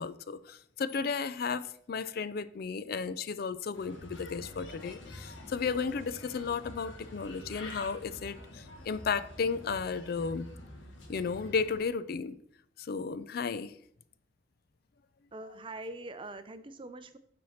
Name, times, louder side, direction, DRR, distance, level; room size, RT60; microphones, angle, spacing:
voice 1, 0.0-10.5 11.1-12.4 12.8-13.7, left 5 dB, 55° left, 0.4 m, -34 dB
Bird, 3.7-11.7, left 1 dB, 85° left, 1.5 m, -47 dB
voice 2, 15.3-17.2, right 2 dB, 30° right, 0.5 m, -43 dB
7.2 x 4.3 x 6.3 m
head